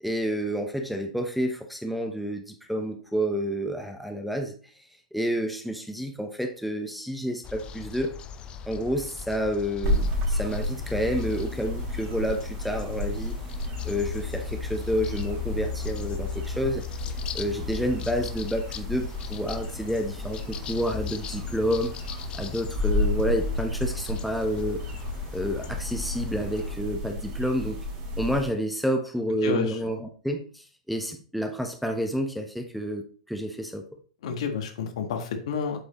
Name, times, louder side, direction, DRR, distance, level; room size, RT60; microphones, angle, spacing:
voice 1, 0.0-8.2 8.7-13.4 13.8-16.8 17.3-21.9 22.3-24.8 25.3-27.8 28.2-33.8, equal, ahead, 3 dB, 0.9 m, -29 dB
sound 1, 7.4-26.8, left 9 dB, 25° left, 0.6 m, -38 dB
sound 2, 9.8-28.5, left 1 dB, 40° right, 3.3 m, -32 dB
voice 2, 29.4-29.8 34.2-35.8, left 6 dB, 60° left, 5 dB, 1.5 m, -29 dB
8.2 x 5.1 x 3.1 m, 0.41 s
hypercardioid pair, 110°, 4 cm